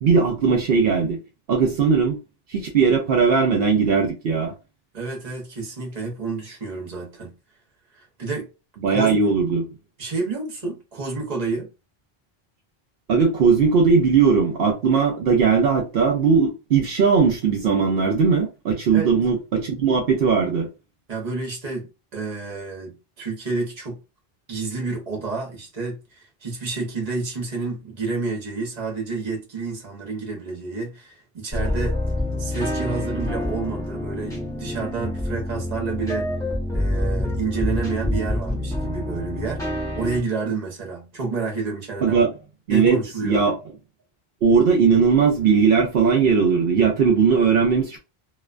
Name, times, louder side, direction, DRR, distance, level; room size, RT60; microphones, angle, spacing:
voice 1, 0.0-1.2 1.5-2.2 2.5-4.5 8.8-9.6 13.1-20.7 42.0-42.3 42.7-43.5 44.4-48.0, right 5 dB, 70° right, 0.8 m, -19 dB
voice 2, 4.9-7.4 8.0-8.5 8.9-9.1 10.0-11.7 18.9-19.1 21.1-24.0 24.5-32.0 32.4-36.3 36.7-39.6 40.0-42.2 42.7-43.4, right 4 dB, 45° right, 0.9 m, -29 dB
sound 1, 31.5-40.2, left 1 dB, 5° left, 0.7 m, -27 dB
2.5 x 2.1 x 2.4 m
omnidirectional pair, 1.0 m